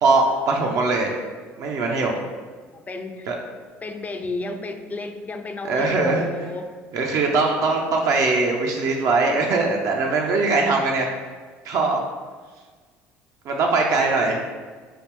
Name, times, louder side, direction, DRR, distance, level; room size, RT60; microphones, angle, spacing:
voice 1, 0.0-1.2 1.6-2.2 3.3-3.4 5.6-6.2 6.9-11.1 11.6-12.0 13.4-14.4, right 3 dB, 60° right, 1 dB, 0.5 m, -21 dB
voice 2, 2.7-3.3 3.8-6.8, left 3 dB, 25° left, 7 dB, 0.4 m, -32 dB
3.1 x 2.5 x 3.2 m, 1.5 s
hypercardioid pair, 70°, 6 cm